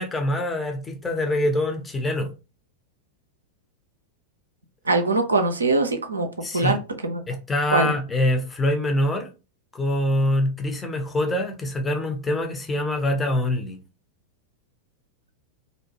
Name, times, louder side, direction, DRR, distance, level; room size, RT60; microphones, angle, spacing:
voice 1, 0.0-2.3 6.4-6.8 7.3-9.3 9.7-13.8, left 1 dB, 15° left, 0.5 m, -24 dB
voice 2, 4.9-6.3 6.5-6.8 7.0-7.2 7.7-7.9, right 3 dB, 80° right, 0.4 m, -22 dB
2.6 x 2.1 x 2.8 m
figure-of-eight pair, 90°, 0 cm